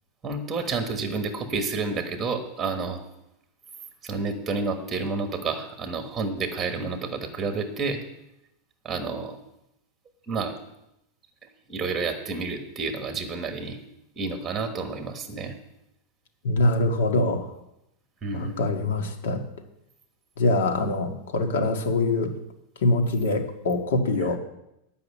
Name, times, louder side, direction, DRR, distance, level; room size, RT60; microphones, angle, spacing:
voice 1, 0.2-3.0 4.0-8.0 8.8-9.4 10.3-10.6 11.7-13.8 14.2-15.5 18.2-18.6, right 4 dB, 15° right, 5 dB, 1.3 m, -30 dB
voice 2, 16.4-17.4 18.3-19.4 20.4-22.3 22.8-24.4, left 2 dB, 85° left, 4 dB, 1.8 m, -24 dB
10.5 x 5.5 x 8.5 m, 0.84 s
supercardioid pair, 155°, 0 cm